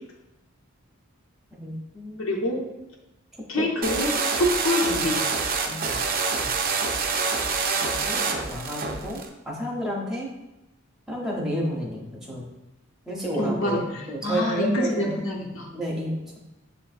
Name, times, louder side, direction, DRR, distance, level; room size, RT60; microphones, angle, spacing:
voice 1, 1.5-2.3 3.5-3.7 5.6-6.0 6.3-6.5 7.8-10.3 11.1-12.5 13.1-13.8 14.1-15.1 15.7-16.4, equal, ahead, -3 dB, 0.6 m, -31 dB
voice 2, 2.2-2.6 3.5-5.2 13.4-15.7, left 1 dB, 70° left, -1 dB, 0.6 m, -26 dB
sound 1, 3.8-9.3, right 4 dB, 40° right, 0.4 m, -26 dB
6.6 x 2.5 x 2.4 m, 0.97 s
head